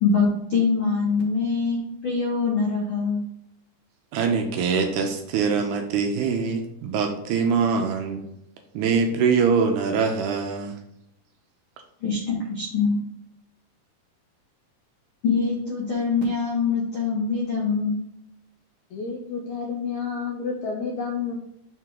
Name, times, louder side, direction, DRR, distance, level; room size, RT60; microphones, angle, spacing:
voice 1, 0.0-3.2 12.0-12.2 12.5-13.0 15.2-18.0, left 4 dB, 60° left, -5 dB, 1.4 m, -23 dB
voice 2, 4.1-8.2 8.7-10.7, right 5 dB, 80° right, 4 dB, 1.8 m, -23 dB
voice 3, 18.9-21.4, left 5 dB, 90° left, 1 dB, 1.6 m, -30 dB
6.7 x 3.6 x 4.7 m, 0.77 s
omnidirectional pair, 4.2 m